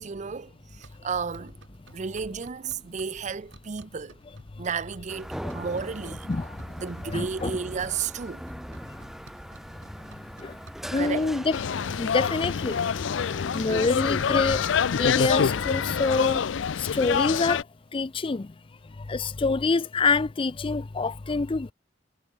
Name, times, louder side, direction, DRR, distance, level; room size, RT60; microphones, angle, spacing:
voice 1, 0.0-1.6 1.9-4.2 4.6-6.3 6.8-8.4 11.0-11.3 13.7-13.9, right 5 dB, 40° right, 0.5 m, -33 dB
sound 1, 0.8-16.5, right 2 dB, 85° right, 2.8 m, -54 dB
sound 2, 5.1-16.1, equal, ahead, 1.2 m, -40 dB
voice 2, 7.0-7.6 10.4-10.5 10.9-11.6 12.0-12.8 13.5-14.6 15.0-16.4 16.8-17.6 17.9-18.5 19.1-21.7, left 4 dB, 30° left, 0.5 m, -26 dB
sound 3, 11.5-17.6, left 7 dB, 90° left, 0.5 m, -26 dB
head